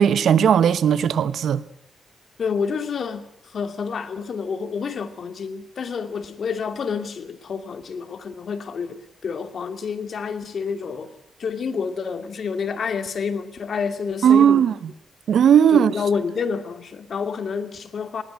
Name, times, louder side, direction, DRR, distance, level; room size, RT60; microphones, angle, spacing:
voice 1, 0.0-1.6 14.2-14.7 15.3-15.9, right 8 dB, 80° right, 1.0 m, -16 dB
voice 2, 2.4-11.1 11.4-14.6 15.7-18.2, left 6 dB, 65° left, 2.6 m, -28 dB
20.0 x 19.5 x 9.3 m
cardioid pair, 90°, 0 cm